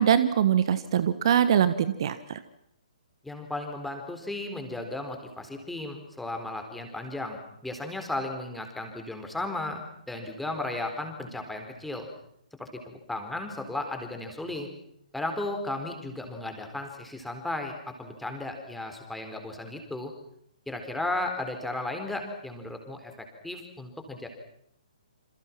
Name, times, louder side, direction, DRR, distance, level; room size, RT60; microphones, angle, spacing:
voice 1, 0.0-2.4, right 9 dB, 40° right, 13 dB, 1.4 m, -23 dB
voice 2, 3.2-12.1 12.6-14.7 15.1-20.1 20.7-24.3, left 2 dB, 5° left, 4 dB, 4.2 m, -35 dB
28.5 x 27.5 x 6.1 m, 0.73 s
figure-of-eight pair, 130°, 4 cm